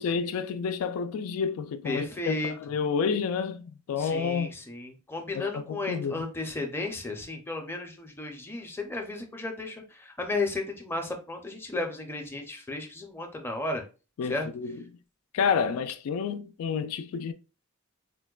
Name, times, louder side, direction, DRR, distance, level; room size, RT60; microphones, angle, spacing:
voice 1, 0.0-4.5 5.3-6.1 14.2-14.8 15.3-17.3, left 6 dB, 85° left, 0.3 m, -29 dB
voice 2, 1.8-2.5 4.0-13.8 14.2-14.5, left 2 dB, 10° left, 0.5 m, -34 dB
4.4 x 2.1 x 2.3 m
head